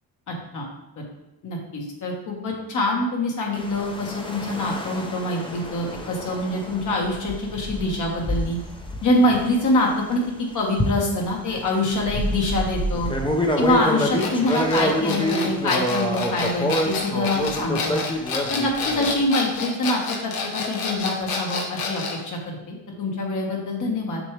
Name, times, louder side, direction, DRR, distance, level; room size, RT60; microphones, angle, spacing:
voice 1, 0.3-0.7 1.0-1.1 1.4-8.6 9.0-13.1 13.6-18.0 18.5-24.2, left 1 dB, 55° left, -1 dB, 1.8 m, -25 dB
sound 1, 3.5-10.3 10.8-19.3, equal, 15° left, 0.8 m, -27 dB
sound 2, 14.2-22.2, left 4 dB, 75° left, 1.3 m, -29 dB
7.1 x 6.2 x 3.4 m, 0.90 s
cardioid pair, 140°, 36 cm